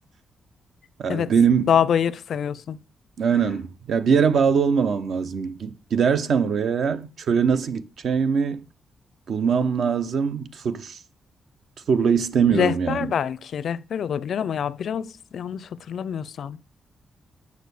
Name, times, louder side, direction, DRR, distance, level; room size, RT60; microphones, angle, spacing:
voice 1, 1.0-1.7 3.2-8.6 9.3-11.0 11.9-13.0, right 6 dB, 60° right, 0.7 m, -22 dB
voice 2, 1.7-2.8 3.3-3.4 12.5-16.8, left 8 dB, 60° left, 0.5 m, -26 dB
8.3 x 6.5 x 6.8 m
wide cardioid pair, 145°, 0 cm